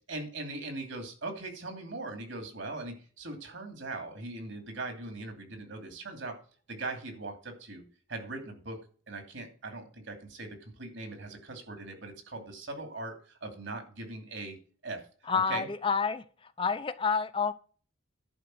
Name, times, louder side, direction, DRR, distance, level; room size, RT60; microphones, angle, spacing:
voice 1, 0.1-6.4 6.7-7.8 8.1-8.8 9.1-14.6 14.8-15.0 15.5-15.7, right 2 dB, 65° right, 2.7 m, -40 dB
voice 2, 15.3-17.5, left 5 dB, 25° left, 0.5 m, -29 dB
11.0 x 4.9 x 7.7 m
head